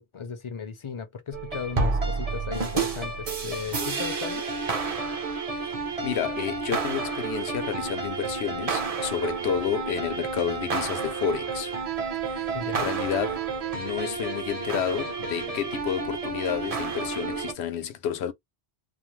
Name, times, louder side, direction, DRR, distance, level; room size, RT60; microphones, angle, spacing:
voice 1, 0.0-4.5 12.5-12.9, left 6 dB, 40° left, 0.5 m, -36 dB
sound 1, 1.3-17.5, right 4 dB, 40° right, 0.7 m, -30 dB
voice 2, 6.0-11.7 12.3-18.3, left 8 dB, 85° left, 0.9 m, -30 dB
2.5 x 2.1 x 3.0 m
omnidirectional pair, 1.1 m